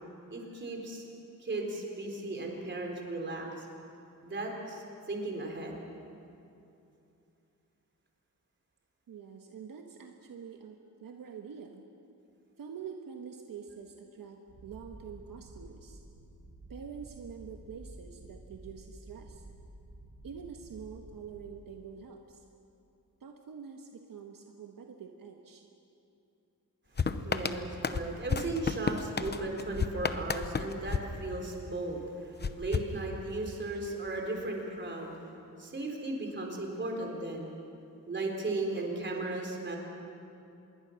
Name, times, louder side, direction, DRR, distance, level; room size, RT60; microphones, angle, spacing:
voice 1, 0.3-1.0 1.4-3.7 4.2-4.8 5.1-5.8 27.0-35.2 35.6-37.5 38.1-39.8, right 2 dB, 35° right, 1 dB, 4.0 m, -36 dB
voice 2, 9.1-11.8 12.6-16.0 16.7-19.4 20.2-22.4 23.2-25.6, right 6 dB, 75° right, 3 dB, 1.5 m, -46 dB
Purr, 14.5-21.5, right 1 dB, 50° right, 6.3 m, -51 dB
sound 1, 27.0-31.8 32.4-33.6, left 5 dB, 30° left, 0.8 m, -33 dB
26.5 x 22.0 x 6.5 m, 2.7 s
wide cardioid pair, 160°, 34 cm